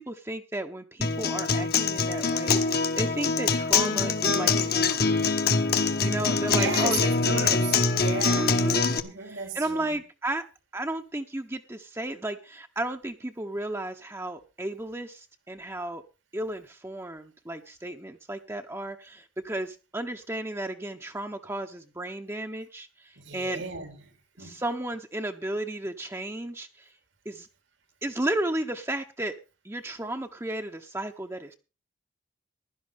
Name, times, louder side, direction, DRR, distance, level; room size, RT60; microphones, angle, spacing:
voice 1, 0.0-5.5 6.0-7.5 8.3-8.9 9.2-10.4 10.7-16.0 16.3-23.6 24.4-26.9 27.2-27.5 28.0-29.4 29.6-31.5, right 1 dB, 15° right, 0.8 m, -34 dB
Acoustic guitar, 1.0-9.0, left 4 dB, 50° left, 1.1 m, -24 dB
voice 2, 6.5-8.6 9.0-10.0 23.2-24.0 24.4-24.6, right 4 dB, 90° right, 3.2 m, -34 dB
16.0 x 11.5 x 3.5 m
head